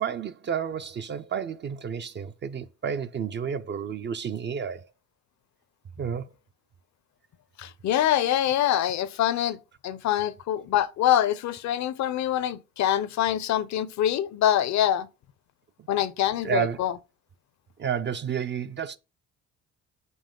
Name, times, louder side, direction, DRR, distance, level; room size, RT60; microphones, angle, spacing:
voice 1, 0.0-4.9 6.0-6.3 16.4-16.8 17.8-19.0, right 8 dB, 40° right, 0.4 m, -31 dB
voice 2, 7.6-9.6 9.8-15.1 15.9-16.9, left 11 dB, 65° left, 0.6 m, -25 dB
5.5 x 5.0 x 3.7 m
cardioid pair, 90°, 30 cm